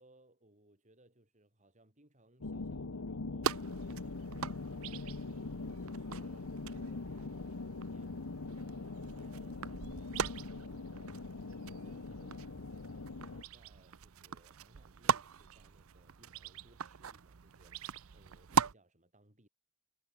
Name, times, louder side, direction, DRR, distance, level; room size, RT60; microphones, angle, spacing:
voice 1, 0.0-11.2 11.6-19.5, right 1 dB, 35° right, 7.7 m, -66 dB
sound 1, 2.4-13.4, left 3 dB, 80° left, 1.0 m, -42 dB
sound 2, 3.4-18.7, right 7 dB, 70° right, 0.6 m, -40 dB
head